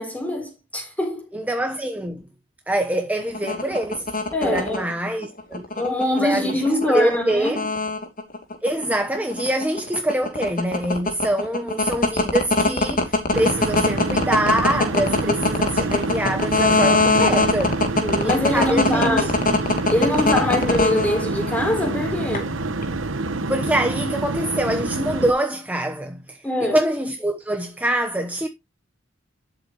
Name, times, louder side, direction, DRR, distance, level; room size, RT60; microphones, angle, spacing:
voice 1, 0.0-1.3 4.3-4.9 5.8-7.7 18.0-19.3 19.9-22.5 26.4-26.8, left 1 dB, 10° left, 4.1 m, -23 dB
voice 2, 1.3-2.2 2.7-4.1 4.4-5.6 6.2-6.5 6.9-7.6 8.6-17.8 18.2-19.2 23.5-28.5, right 1 dB, 10° right, 1.1 m, -24 dB
sound 1, 3.2-21.6 22.3-22.9, left 3 dB, 45° left, 2.7 m, -21 dB
sound 2, 13.3-25.3, right 2 dB, 75° right, 1.1 m, -27 dB
12.0 x 7.8 x 3.1 m
head